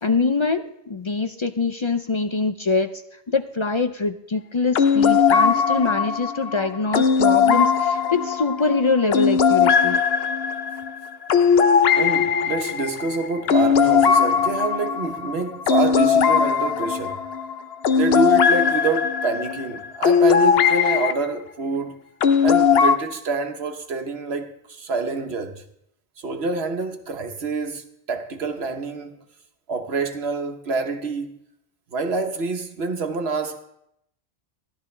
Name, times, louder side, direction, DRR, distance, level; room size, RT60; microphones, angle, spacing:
voice 1, 0.0-2.9 3.3-10.0, left 4 dB, 40° left, 0.4 m, -24 dB
sound 1, 4.7-21.1 22.2-23.0, left 6 dB, 70° left, 1.0 m, -19 dB
voice 2, 12.0-17.2 18.0-22.0 22.4-25.6 26.2-29.2 29.7-31.4 31.9-33.6, right 3 dB, 80° right, 1.3 m, -27 dB
14.5 x 12.0 x 3.3 m
omnidirectional pair, 1.1 m